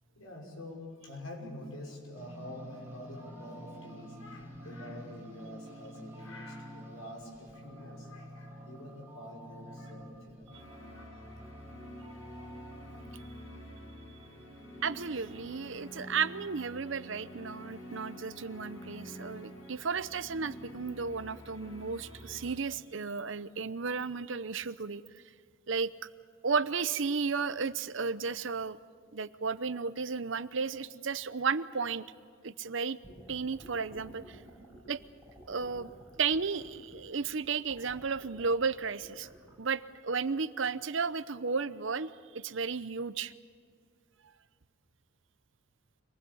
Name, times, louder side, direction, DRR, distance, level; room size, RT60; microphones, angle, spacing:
voice 1, 0.1-10.5 10.9-11.4, left 1 dB, 85° left, 0 dB, 6.1 m, -46 dB
sound 1, 2.1-15.9, equal, 10° right, 4.5 m, -50 dB
sound 2, 10.5-22.6, equal, 70° left, 5.7 m, -48 dB
voice 2, 14.8-25.0 25.7-25.9 26.4-28.8 29.1-32.0 32.4-33.0 33.3-34.4 34.9-35.0 35.5-35.9 36.2-39.3 39.6-43.3, right 5 dB, 65° right, 14 dB, 0.8 m, -33 dB
sound 3, 33.0-39.5, right 1 dB, 10° left, 7.3 m, -53 dB
26.0 x 20.0 x 8.6 m, 2.1 s
head